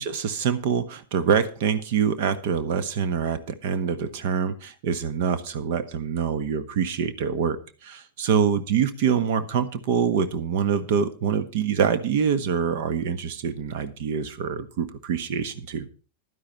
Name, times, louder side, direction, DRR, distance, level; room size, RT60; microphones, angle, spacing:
voice 1, 0.0-15.9, right 7 dB, 50° right, 11 dB, 1.4 m, -25 dB
12.0 x 10.5 x 4.6 m, 0.37 s
figure-of-eight pair, 90°, 0 cm